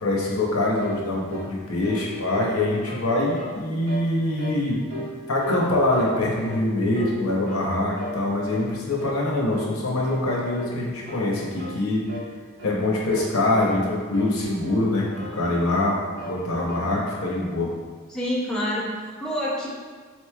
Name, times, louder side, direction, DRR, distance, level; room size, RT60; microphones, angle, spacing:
voice 1, 0.0-4.8 5.3-12.0 12.6-15.1 15.3-16.0 16.3-17.7, left 2 dB, 80° left, -3 dB, 0.7 m, -24 dB
sound 1, 0.8-1.0 1.3-1.5 1.8-3.0 3.3-3.6 3.9-4.1 4.4-4.6 4.9-5.7 5.9-6.7 6.9-7.2 7.5-7.7 8.0-8.2 8.5-8.7 9.0-9.2 9.5-9.7 10.0-10.2 10.5-10.8 11.1-11.2 11.6-11.8 12.1-12.3 12.6-12.8 13.1-13.8 14.1-14.9 15.1-15.9 16.2-16.9, equal, 75° right, 1.0 m, -36 dB
voice 2, 18.1-19.7, equal, 5° left, -6 dB, 0.5 m, -27 dB
3.8 x 3.1 x 2.2 m, 1.6 s
head